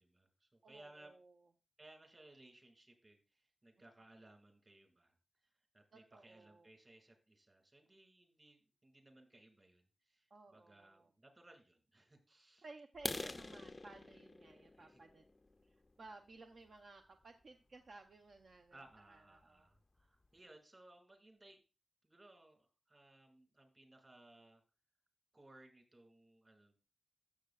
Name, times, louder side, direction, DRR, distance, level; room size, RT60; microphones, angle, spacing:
voice 1, 0.0-1.1 1.8-5.1 5.4-12.7 13.2-13.4 14.8-15.0 18.7-21.6 22.0-24.6 25.3-26.8, right 2 dB, 30° right, 5 dB, 2.1 m, -62 dB
voice 2, 0.6-1.4 5.9-6.7 10.3-11.1 12.6-15.2 15.6-18.8 19.1-19.7, right 3 dB, 60° right, 5 dB, 0.6 m, -58 dB
sound 1, 12.9-16.7 17.2-17.4 17.9-18.0 18.4-18.6 18.9-19.0 19.4-19.5 19.8-20.3, left 2 dB, 25° left, 0.4 m, -47 dB
13.5 x 6.5 x 2.3 m, 0.30 s
wide cardioid pair, 120°, 0 cm